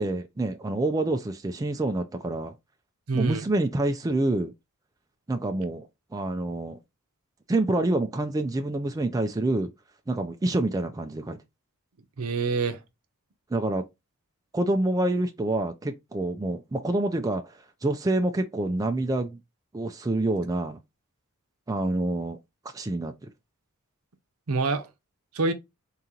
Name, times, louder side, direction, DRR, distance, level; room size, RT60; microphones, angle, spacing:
voice 1, 0.0-2.5 3.1-4.5 5.3-6.8 7.5-9.7 10.1-11.4 13.5-13.8 14.5-19.4 19.7-20.8 21.7-22.4 22.7-23.3, right 2 dB, 15° right, 0.3 m, -27 dB
voice 2, 3.1-3.5 12.2-12.8 24.5-24.9 25.3-25.5, right 4 dB, 70° right, 0.7 m, -26 dB
3.8 x 2.9 x 3.7 m
head